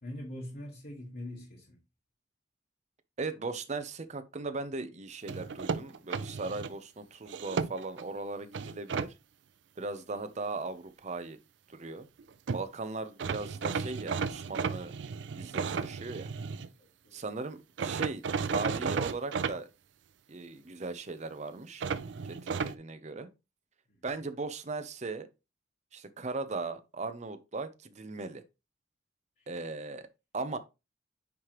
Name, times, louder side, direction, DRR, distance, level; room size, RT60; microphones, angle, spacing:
voice 1, 0.0-1.8 16.8-17.2 23.9-24.0 29.4-29.5, left 1 dB, 50° left, 1.5 m, -43 dB
voice 2, 3.2-9.1 9.8-11.4 11.7-12.1 12.5-14.9 15.3-16.3 17.1-18.2 18.5-19.7 20.3-21.9 22.3-23.3 24.0-25.3 25.9-28.4 29.5-30.1 30.3-30.6, right 3 dB, 40° right, 0.7 m, -38 dB
sound 1, 5.3-6.7 7.3-8.0 8.5-9.1 12.2-12.3 12.5-12.6 13.2-16.7 17.8-19.5 21.8-22.7, right 5 dB, 85° right, 0.4 m, -33 dB
9.4 x 3.3 x 3.0 m
head